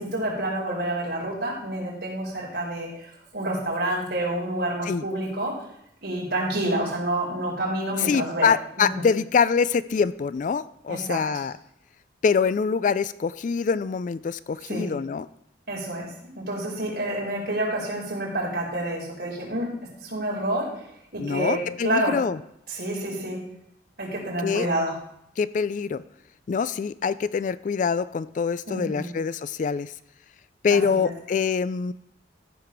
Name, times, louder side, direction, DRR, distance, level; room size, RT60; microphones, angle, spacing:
voice 1, 0.0-5.5 6.0-9.1 10.9-11.2 14.7-14.9 15.7-16.1 16.4-19.7 20.0-20.7 21.1-22.1 22.7-23.4 24.0-24.9 28.7-29.1 30.7-31.1, right 1 dB, 65° right, -3 dB, 4.5 m, -28 dB
voice 2, 8.0-11.5 12.2-15.3 21.2-22.4 24.4-24.7 25.4-26.0 26.5-29.9 30.6-31.9, left 5 dB, 45° left, 16 dB, 0.3 m, -24 dB
14.5 x 4.9 x 5.9 m, 0.74 s
head